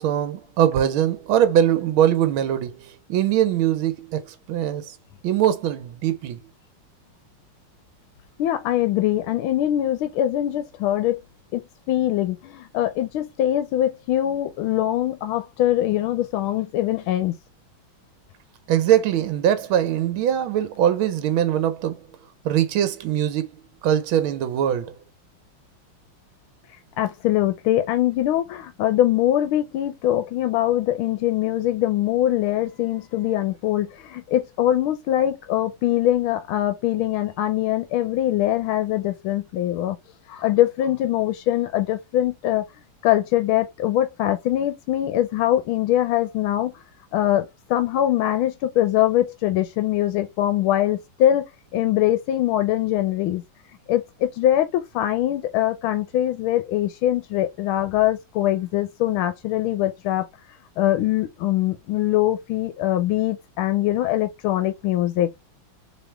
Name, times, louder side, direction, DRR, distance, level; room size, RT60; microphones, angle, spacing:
voice 1, 0.0-4.9 5.2-6.4 18.7-22.0 22.4-23.5 23.8-24.9, right 10 dB, 80° right, 1.6 m, -22 dB
voice 2, 8.4-11.2 11.5-11.6 11.9-17.3 27.0-40.0 40.3-42.6 43.0-46.7 47.1-51.4 51.7-53.4 53.9-60.2 60.8-65.3, left 13 dB, 90° left, 1.5 m, -22 dB
4.2 x 3.5 x 3.2 m
omnidirectional pair, 2.3 m